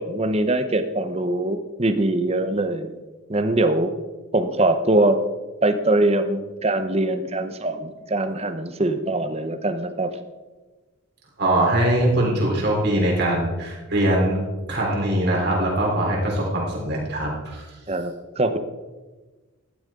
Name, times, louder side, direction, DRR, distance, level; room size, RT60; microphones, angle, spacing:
voice 1, 0.0-2.9 3.3-3.9 4.3-5.2 5.6-10.1 17.9-18.6, right 2 dB, 30° right, 9 dB, 0.8 m, -22 dB
voice 2, 11.4-14.4 14.7-17.6, right 1 dB, 50° right, -2 dB, 3.7 m, -22 dB
14.5 x 11.5 x 3.7 m, 1.2 s
head